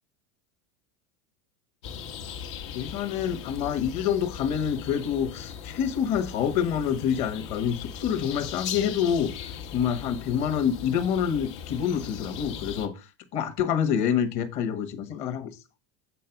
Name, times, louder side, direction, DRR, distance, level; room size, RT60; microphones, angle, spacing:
sound 1, 1.8-12.9, left 7 dB, 80° left, 1.5 m, -39 dB
voice 1, 2.7-9.3 9.7-12.9 13.3-15.5, left 8 dB, 45° left, 1.3 m, -27 dB
8.5 x 3.8 x 5.8 m
supercardioid pair, 155°, 15 cm